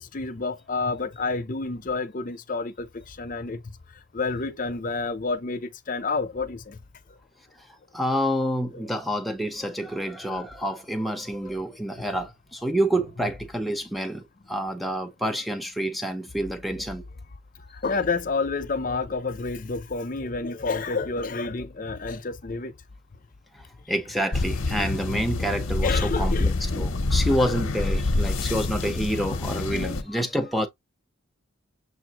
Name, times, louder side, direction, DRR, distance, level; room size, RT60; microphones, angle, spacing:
voice 1, 0.0-3.6 4.1-6.8 17.8-22.7 25.8-26.5 29.2-29.4 29.8-30.2, left 4 dB, 40° left, 0.6 m, -29 dB
voice 2, 7.9-17.0 23.9-30.7, equal, ahead, 0.7 m, -28 dB
sound 1, 24.3-30.0, left 2 dB, 85° left, 0.7 m, -26 dB
6.8 x 2.6 x 2.9 m
head